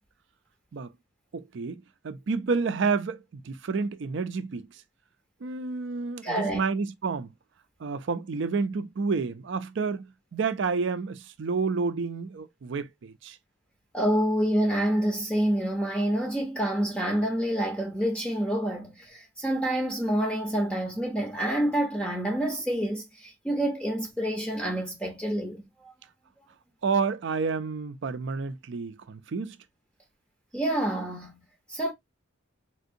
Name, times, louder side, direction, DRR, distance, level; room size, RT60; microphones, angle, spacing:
voice 1, 1.3-4.7 5.4-7.3 7.8-13.4 26.8-29.6, right 4 dB, 60° right, 0.4 m, -30 dB
voice 2, 6.2-6.6 13.9-25.6 30.5-31.9, right 1 dB, 5° left, 0.6 m, -27 dB
3.6 x 2.6 x 2.5 m
head